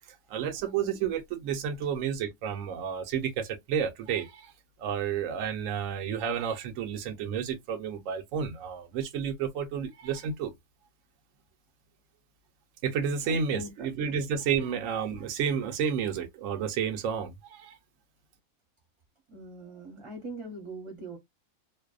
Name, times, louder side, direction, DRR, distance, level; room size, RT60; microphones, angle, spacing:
voice 1, 0.3-4.5 4.8-10.5 12.8-17.8, right 7 dB, 70° right, 1.0 m, -31 dB
voice 2, 13.2-13.7 14.1-14.2 19.3-21.2, right 1 dB, 25° right, 0.7 m, -41 dB
2.6 x 2.1 x 2.3 m
omnidirectional pair, 1.5 m